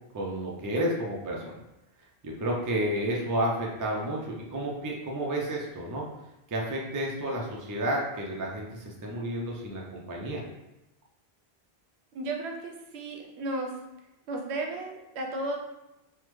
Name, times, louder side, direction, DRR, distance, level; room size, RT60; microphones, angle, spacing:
voice 1, 0.1-1.5 2.2-6.0 6.5-10.4, right 1 dB, 30° right, -2 dB, 0.3 m, -31 dB
voice 2, 12.1-13.7 14.3-15.6, right 2 dB, 85° right, 2 dB, 0.9 m, -34 dB
3.4 x 2.1 x 3.0 m, 0.95 s
omnidirectional pair, 1.1 m